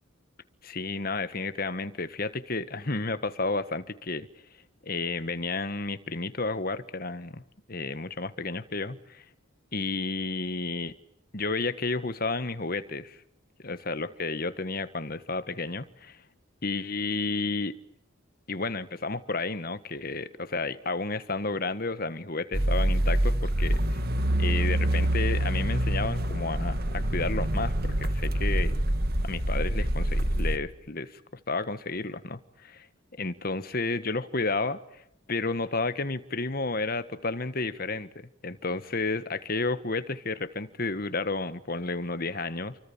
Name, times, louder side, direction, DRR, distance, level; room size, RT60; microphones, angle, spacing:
voice 1, 0.6-4.3 4.8-7.4 7.7-9.2 9.7-10.9 11.3-13.2 13.6-16.2 16.6-17.7 18.5-24.0 24.4-28.8 29.2-31.2 31.5-32.9 33.2-38.1 38.4-42.8, left 3 dB, 45° left, 12 dB, 1.6 m, -31 dB
sound 1, 22.5-30.6, right 1 dB, 45° right, 1.9 m, -26 dB
29.0 x 24.5 x 7.4 m, 0.73 s
head